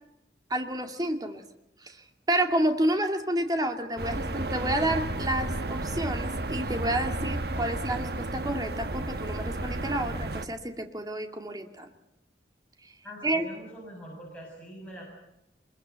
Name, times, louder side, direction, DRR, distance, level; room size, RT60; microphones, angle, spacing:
voice 1, 0.5-1.4 1.8-11.9 13.2-13.5, right 1 dB, 20° right, 4 dB, 2.2 m, -30 dB
sound 1, 4.0-10.5, right 2 dB, 60° right, 1.3 m, -32 dB
voice 2, 13.0-15.1, equal, 5° left, -3 dB, 6.9 m, -44 dB
24.0 x 22.0 x 8.1 m, 0.86 s
head